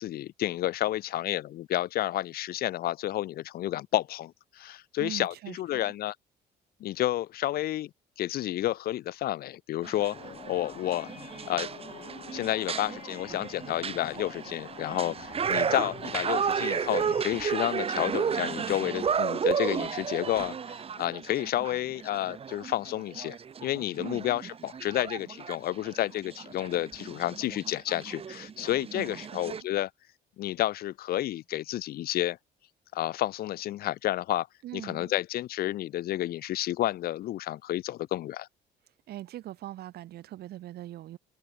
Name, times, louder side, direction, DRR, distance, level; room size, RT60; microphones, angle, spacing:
voice 1, 0.0-6.2 6.8-7.9 8.2-10.2 10.5-11.1 11.5-11.7 12.3-23.4 23.6-29.9 30.4-32.4 32.9-34.5 34.7-38.5, left 14 dB, 65° left, 0.8 m, -30 dB
voice 2, 5.0-5.9 24.0-24.3 28.9-29.7 34.6-35.1 39.1-41.2, right 14 dB, 70° right, 3.8 m, -41 dB
sound 1, 9.8-29.6, right 7 dB, 35° right, 1.7 m, -33 dB
sound 2, 10.1-17.2, left 8 dB, 45° left, 2.3 m, -47 dB
sound 3, 16.1-18.7, right 1 dB, 5° right, 6.9 m, -55 dB
cardioid pair, 110°, 17 cm